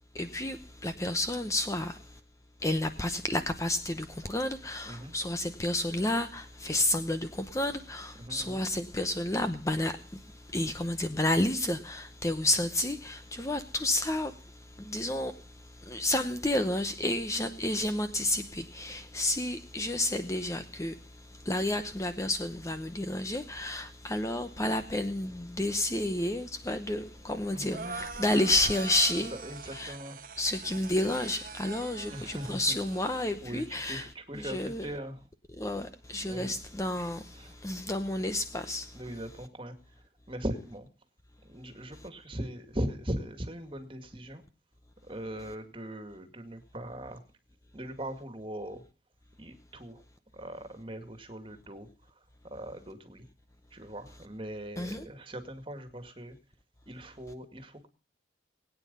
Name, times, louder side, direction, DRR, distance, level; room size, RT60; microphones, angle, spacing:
voice 1, 0.1-2.0 2.6-10.0 10.5-14.4 14.8-15.3 15.8-21.0 21.4-29.3 29.7-29.9 30.4-34.1 34.3-34.9 35.6-39.0 54.8-55.1, left 1 dB, 15° left, 0.8 m, -30 dB
voice 2, 8.2-8.6 27.2-28.0 29.2-30.2 32.1-32.8 33.4-35.3 36.2-36.6 37.3-37.6 38.9-40.9 41.4-44.4 45.0-47.2 47.7-48.8 49.4-50.0 50.3-53.3 53.7-56.4 56.9-57.9, right 1 dB, 30° right, 2.1 m, -40 dB
sound 1, 27.7-33.3, right 5 dB, 50° right, 1.1 m, -43 dB
20.5 x 9.4 x 5.4 m
head